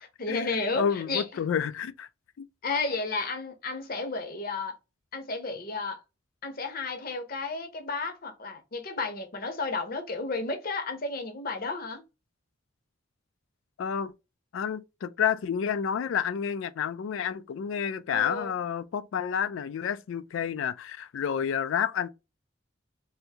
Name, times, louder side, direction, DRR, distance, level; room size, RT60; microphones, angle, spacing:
voice 1, 0.2-1.2 2.6-4.7 5.1-6.0 6.4-12.0 18.1-18.5, left 3 dB, 45° left, 0.7 m, -32 dB
voice 2, 0.7-2.1 2.4-2.5 13.8-14.1 14.5-22.1, left 7 dB, 70° left, 0.3 m, -30 dB
3.4 x 2.6 x 2.7 m
head